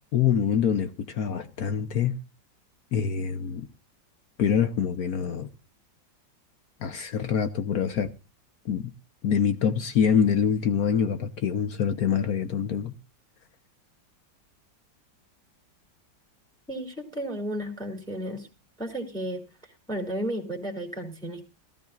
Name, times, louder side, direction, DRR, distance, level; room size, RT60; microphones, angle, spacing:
voice 1, 0.1-2.2 2.9-3.7 4.4-5.5 6.8-8.1 8.6-8.9 9.2-12.9, left 7 dB, 60° left, 1.2 m, -25 dB
voice 2, 16.7-18.5 18.8-21.4, right 1 dB, ahead, 2.8 m, -33 dB
18.5 x 13.5 x 2.4 m
omnidirectional pair, 2.0 m